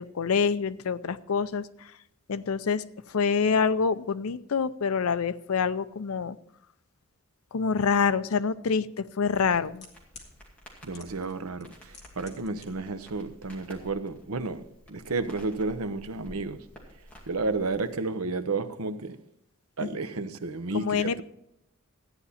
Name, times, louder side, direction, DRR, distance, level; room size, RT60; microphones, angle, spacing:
voice 1, 0.0-1.9 2.3-6.4 7.5-9.9 19.8-19.9 20.7-21.2, left 5 dB, 80° left, 0.5 m, -26 dB
sound 1, 8.3-8.4 9.3-10.3 10.9-11.3 11.6-12.7 12.9-13.0, left 5 dB, 30° left, 2.2 m, -48 dB
Crackle, 9.3-18.0, equal, 5° left, 2.3 m, -52 dB
voice 2, 10.8-16.6 17.3-19.2 19.8-21.2, right 3 dB, 85° right, 0.8 m, -32 dB
14.0 x 9.8 x 4.2 m
head